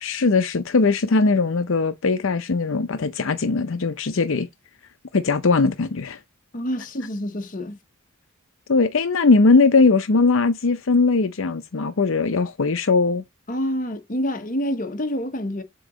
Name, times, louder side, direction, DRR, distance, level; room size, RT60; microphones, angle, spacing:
voice 1, 0.0-4.5 5.1-6.2 8.7-13.2, left 3 dB, 70° left, 0.6 m, -20 dB
voice 2, 6.5-7.8 13.5-15.6, equal, 40° left, 1.0 m, -27 dB
7.7 x 2.9 x 4.9 m
head